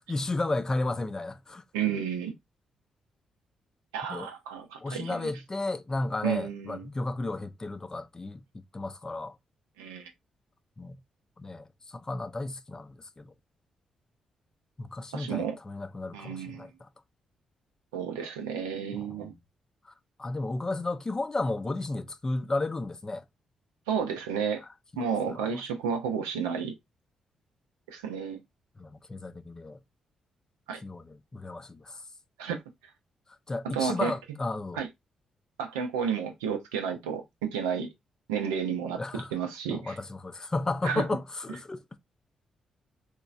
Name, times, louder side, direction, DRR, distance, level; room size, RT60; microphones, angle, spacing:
voice 1, 0.1-1.6 4.1-4.3 4.8-8.4 8.7-9.3 10.8-11.0 11.4-13.3 14.8-16.9 18.9-19.4 20.2-23.2 24.9-25.0 25.3-25.6 28.8-29.8 30.8-32.0 33.5-34.8 39.0-39.3 39.7-41.8, left 2 dB, 30° left, 0.4 m, -33 dB
voice 2, 1.7-2.3 3.9-5.3 6.2-6.9 9.8-10.1 15.1-15.6 16.1-16.7 17.9-19.3 23.9-24.6 25.0-26.8 27.9-28.4 30.7-30.8 32.4-32.6 33.6-34.1 34.7-34.9 35.6-37.9 38.3-39.0 39.3-40.0 40.8-41.0, right 7 dB, 85° right, 0.5 m, -31 dB
3.0 x 2.1 x 2.4 m
hypercardioid pair, 40°, 2 cm